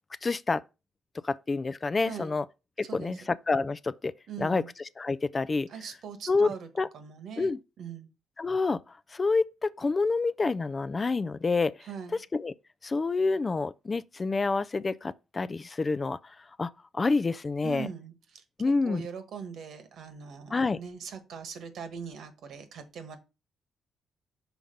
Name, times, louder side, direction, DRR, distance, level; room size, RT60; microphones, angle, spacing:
voice 1, 0.2-0.6 1.2-2.4 2.8-4.1 4.4-4.6 5.0-5.7 6.3-6.5 6.8-6.9 7.4-7.6 8.4-8.8 9.1-11.8 12.3-12.5 12.8-17.9 18.6-19.1 20.5-20.8, left 3 dB, 30° left, 0.3 m, -28 dB
voice 2, 2.0-2.3 2.8-3.2 4.3-4.7 5.7-8.1 11.8-12.2 17.6-18.4 18.8-23.2, right 6 dB, 70° right, 1.3 m, -41 dB
5.8 x 3.6 x 5.2 m
cardioid pair, 90°, 0 cm